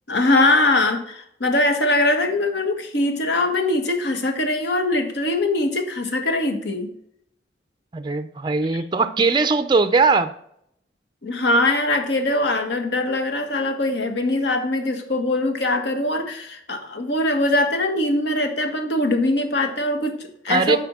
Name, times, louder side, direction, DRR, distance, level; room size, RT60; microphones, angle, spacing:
voice 1, 0.1-6.9 11.2-20.8, left 2 dB, 70° left, 5 dB, 1.4 m, -22 dB
voice 2, 7.9-10.3 20.5-20.8, right 4 dB, 25° right, 10 dB, 0.4 m, -19 dB
8.6 x 4.5 x 6.0 m, 0.70 s
head